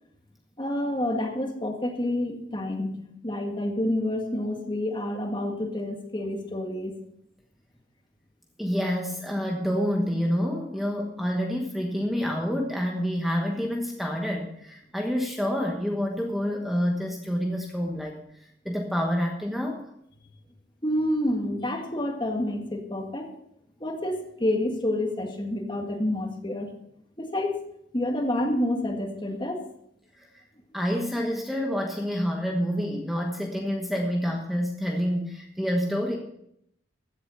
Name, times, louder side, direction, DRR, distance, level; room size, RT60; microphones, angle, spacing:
voice 1, 0.6-2.9 3.2-6.9 20.8-23.3 23.8-26.7 27.2-27.5 27.9-29.6, left 1 dB, 25° left, 3 dB, 1.8 m, -28 dB
voice 2, 8.6-18.2 18.6-19.8 30.7-36.2, equal, ahead, 0 dB, 1.2 m, -28 dB
15.5 x 7.9 x 5.6 m, 0.75 s
head